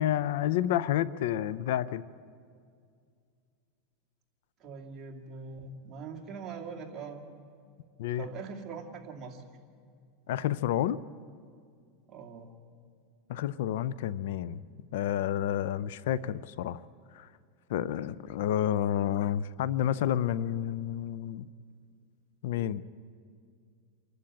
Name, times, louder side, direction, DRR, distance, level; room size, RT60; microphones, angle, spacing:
voice 1, 0.0-2.0 8.0-8.2 10.3-11.0 13.3-14.6 14.9-16.8 17.1-17.3 17.7-21.5 22.4-22.8, left 11 dB, 75° left, 18 dB, 0.5 m, -30 dB
voice 2, 4.6-7.2 8.2-9.4 12.1-12.5, right 5 dB, 30° right, 0 dB, 2.5 m, -42 dB
27.5 x 11.5 x 8.8 m, 2.2 s
supercardioid pair, 140°, 0 cm